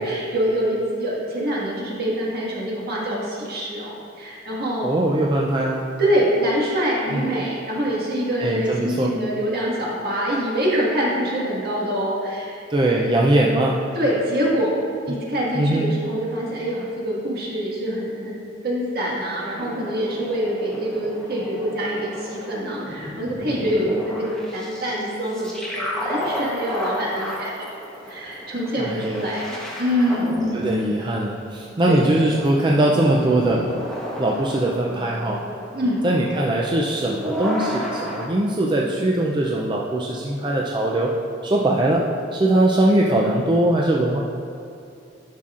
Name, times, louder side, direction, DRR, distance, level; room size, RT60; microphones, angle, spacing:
voice 1, 0.0-4.9 6.0-12.6 13.9-14.7 15.0-18.4 18.6-27.5 28.1-30.8 31.9-32.1 35.7-36.0, equal, 55° right, -5 dB, 1.7 m, -25 dB
voice 2, 4.8-5.8 7.1-7.3 8.4-9.1 12.7-13.8 15.5-15.9 28.8-29.3 30.5-33.6 34.2-35.4 36.0-41.1 41.4-42.0 42.3-44.2, right 1 dB, 25° right, -2 dB, 0.4 m, -21 dB
sound 1, 19.5-38.3, left 1 dB, 5° left, 1.0 m, -33 dB
11.0 x 5.7 x 2.5 m, 2.6 s
head